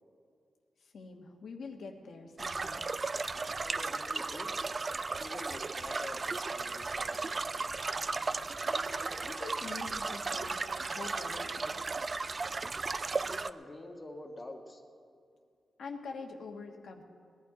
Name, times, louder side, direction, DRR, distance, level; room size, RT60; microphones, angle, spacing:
voice 1, 0.8-2.8 8.6-11.9 15.8-17.0, left 4 dB, 70° left, 2 dB, 1.3 m, -45 dB
sound 1, 2.4-13.5, right 3 dB, 35° right, 0.4 m, -35 dB
voice 2, 3.6-4.6 5.2-7.6 13.3-14.8, left 2 dB, 25° left, 1 dB, 1.5 m, -47 dB
19.0 x 11.5 x 4.9 m, 2.2 s
wide cardioid pair, 110°, 0 cm